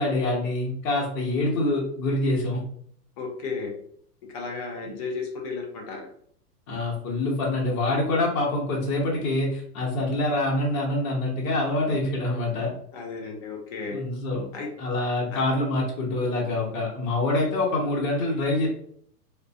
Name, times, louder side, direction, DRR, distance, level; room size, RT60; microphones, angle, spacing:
voice 1, 0.0-2.6 4.8-4.9 6.7-12.7 13.9-14.4 14.8-18.7, left 2 dB, 60° left, -3 dB, 1.0 m, -25 dB
voice 2, 3.2-3.7 4.3-6.0 12.9-14.0 14.5-14.7 15.3-15.4, left 4 dB, 25° left, 1 dB, 0.3 m, -33 dB
2.4 x 2.4 x 2.3 m, 0.64 s
hypercardioid pair, 120°, 49 cm